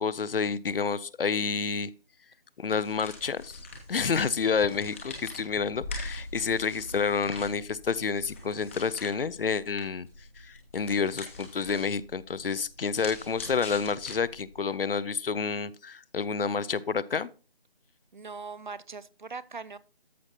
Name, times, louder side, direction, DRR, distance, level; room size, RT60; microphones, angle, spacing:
voice 1, 0.0-1.9 2.6-3.6 3.9-10.1 10.4-17.3, left 5 dB, 70° left, 19 dB, 0.5 m, -29 dB
sound 1, 2.7-14.6, left 2 dB, 15° left, 1.0 m, -43 dB
voice 2, 18.1-19.8, right 4 dB, 55° right, 18 dB, 0.5 m, -40 dB
13.5 x 5.7 x 2.8 m, 0.35 s
figure-of-eight pair, 165°, 30 cm